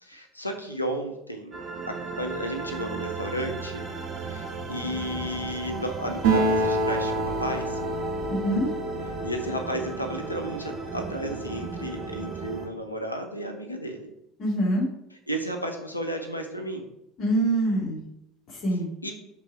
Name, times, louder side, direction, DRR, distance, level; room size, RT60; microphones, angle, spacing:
voice 1, 0.0-1.5 1.9-3.8 4.2-7.8 9.0-14.1 15.3-16.8 19.0-19.1, equal, 90° left, 4 dB, 0.6 m, -33 dB
sound 1, 1.5-12.7, right 4 dB, 30° right, 1.0 m, -35 dB
Acoustic guitar, 6.2-10.0, right 2 dB, 60° right, 2.1 m, -27 dB
voice 2, 8.3-8.7 14.4-14.9 17.2-18.0 18.5-18.9, right 1 dB, 40° left, -5 dB, 2.2 m, -25 dB
6.0 x 3.7 x 4.6 m, 0.82 s
figure-of-eight pair, 70°, 0 cm